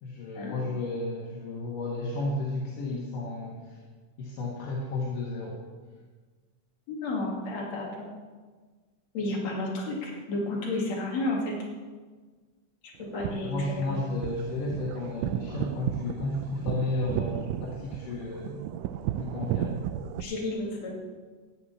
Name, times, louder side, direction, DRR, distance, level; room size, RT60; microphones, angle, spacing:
voice 1, 0.0-3.8 4.2-5.6 13.4-18.6 19.2-19.8, left 2 dB, 85° left, -3 dB, 3.1 m, -33 dB
voice 2, 6.9-8.1 9.1-11.5 13.0-14.0 20.2-21.0, left 2 dB, 55° left, -3 dB, 3.5 m, -32 dB
sound 1, 13.0-20.2, right 10 dB, 85° right, 2.1 m, -34 dB
13.5 x 5.6 x 8.6 m, 1.4 s
omnidirectional pair, 3.7 m